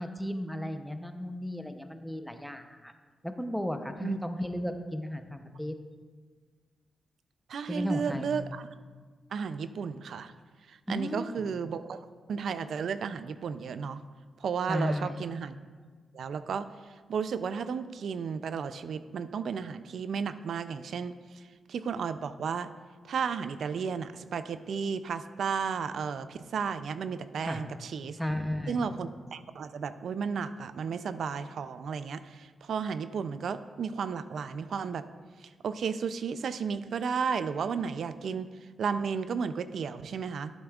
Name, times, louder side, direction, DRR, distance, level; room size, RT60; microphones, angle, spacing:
voice 1, 0.0-2.9 3.2-5.8 7.7-8.4 10.9-11.5 14.7-15.2 27.4-27.6 28.2-28.9, left 1 dB, ahead, 7 dB, 0.6 m, -34 dB
voice 2, 7.5-8.7 9.3-10.3 10.7-12.0 12.3-14.0 14.4-15.5 16.1-16.7 17.1-22.7 23.0-28.2 28.7-35.0 35.4-38.5 38.8-40.5, right 6 dB, 75° right, 12 dB, 0.4 m, -33 dB
12.0 x 7.8 x 2.4 m, 1.5 s
cardioid pair, 90°, 0 cm